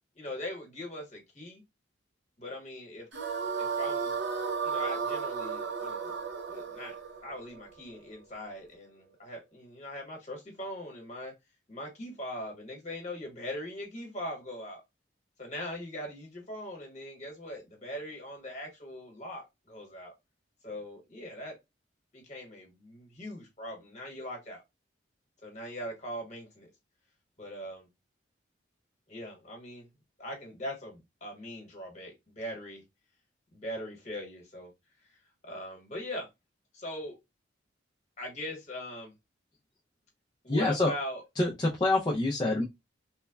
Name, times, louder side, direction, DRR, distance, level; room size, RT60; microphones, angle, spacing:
voice 1, 0.1-1.6 2.4-3.1 3.6-4.1 4.6-6.2 6.5-6.9 7.2-11.3 11.7-14.8 15.4-20.1 20.6-21.6 22.1-24.6 25.4-26.7 27.4-27.9 29.1-29.9 30.2-32.8 33.5-34.7 35.0-35.2 35.4-36.3 36.7-37.1 38.2-39.1 40.4-41.2, left 1 dB, 35° left, 1.1 m, -41 dB
sound 1, 3.1-8.3, right 5 dB, 70° right, 0.6 m, -34 dB
voice 2, 40.5-40.9 41.4-42.6, left 2 dB, 20° left, 0.4 m, -26 dB
3.1 x 2.2 x 2.2 m
head